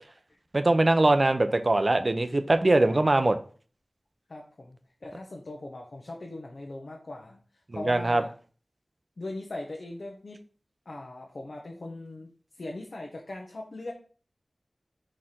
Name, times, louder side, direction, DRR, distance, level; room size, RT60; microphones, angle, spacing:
voice 1, 0.5-3.4 7.9-8.2, right 2 dB, 45° right, 9 dB, 0.6 m, -22 dB
voice 2, 2.7-3.0 4.3-7.4 7.7-8.3 9.2-10.4 10.9-12.3 12.6-13.9, left 2 dB, 75° left, 0 dB, 0.9 m, -40 dB
5.0 x 4.4 x 4.2 m, 0.40 s
wide cardioid pair, 65°, 0 cm